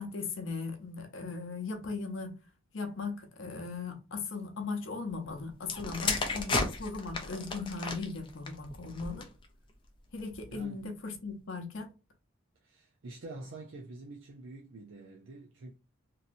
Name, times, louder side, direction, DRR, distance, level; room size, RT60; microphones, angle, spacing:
voice 1, 0.0-2.4 2.7-9.3 10.1-11.9, left 4 dB, 65° left, 0.7 m, -38 dB
sound 1, 5.6-9.5 10.2-10.5, left 3 dB, 25° left, 0.5 m, -34 dB
voice 2, 10.5-10.9 12.6-15.7, right 2 dB, 65° right, 0.5 m, -47 dB
3.0 x 2.7 x 2.5 m
head